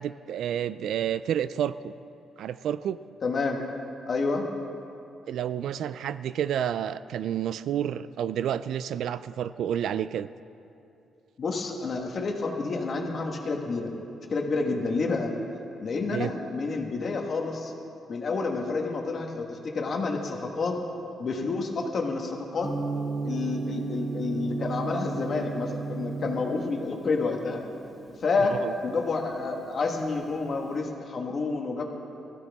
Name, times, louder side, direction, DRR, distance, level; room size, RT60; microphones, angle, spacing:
voice 1, 0.0-1.9 2.4-3.0 5.3-10.3 16.1-16.3 28.4-28.7, right 9 dB, 65° right, 14 dB, 0.3 m, -30 dB
voice 2, 3.2-3.6 4.1-4.5 11.4-13.9 14.3-15.3 15.8-17.7 18.1-20.8 21.2-22.7 23.2-27.6 28.2-31.8, left 3 dB, 35° left, 2 dB, 1.4 m, -29 dB
Gong, 22.6-30.7, right 4 dB, 30° right, 1.8 m, -35 dB
20.0 x 14.5 x 3.5 m, 2.7 s
cardioid pair, 180°, 0 cm